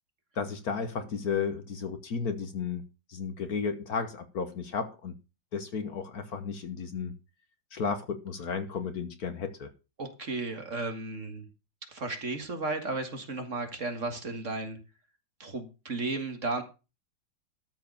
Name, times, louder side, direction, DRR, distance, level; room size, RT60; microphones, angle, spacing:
voice 1, 0.3-2.8 3.1-5.1 5.5-7.1 7.7-9.7, left 5 dB, 55° left, 1.5 m, -33 dB
voice 2, 10.0-11.5 11.9-14.8 15.4-16.6, right 3 dB, 40° right, 1.9 m, -34 dB
13.0 x 4.8 x 6.5 m
omnidirectional pair, 2.0 m